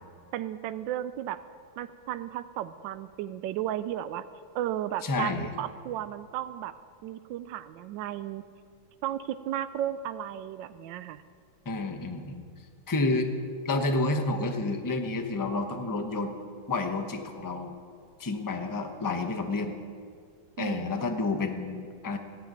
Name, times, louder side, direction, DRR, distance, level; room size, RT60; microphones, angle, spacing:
voice 1, 0.3-1.4 1.8-4.2 4.5-6.7 7.0-8.4 9.0-11.2 20.6-21.0, right 11 dB, 75° right, 12 dB, 1.2 m, -34 dB
voice 2, 5.0-5.5 11.6-12.4 12.9-13.3 13.6-16.3 16.7-17.8 18.2-19.7 20.6-22.2, left 2 dB, 20° left, 5 dB, 0.5 m, -29 dB
14.0 x 9.1 x 9.0 m, 2.1 s
omnidirectional pair, 2.2 m